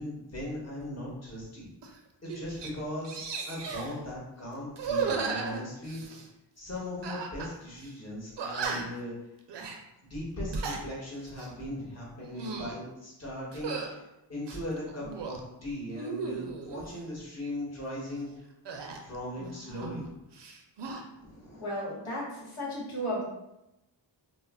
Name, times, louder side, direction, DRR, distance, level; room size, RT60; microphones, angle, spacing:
voice 1, 0.0-1.7 2.2-6.0 6.6-9.1 9.5-9.7 10.1-18.3 19.0-20.3 21.1-21.7, left 1 dB, 30° left, -5 dB, 1.1 m, -38 dB
sound 1, 1.8-2.0 2.3-2.7 3.0-3.9 4.7-6.3 7.0-7.5 7.8-7.9 8.4-9.0 9.5-9.8 10.3-10.8 11.3-11.5 12.2-12.8 13.5-13.9 14.4-15.4 15.9-16.9 18.7-20.1 20.3-21.0, right 5 dB, 60° right, 0.5 m, -35 dB
voice 2, 21.6-23.2, equal, 85° left, -6 dB, 1.1 m, -34 dB
2.2 x 2.0 x 3.4 m, 0.90 s
cardioid pair, 45°, 48 cm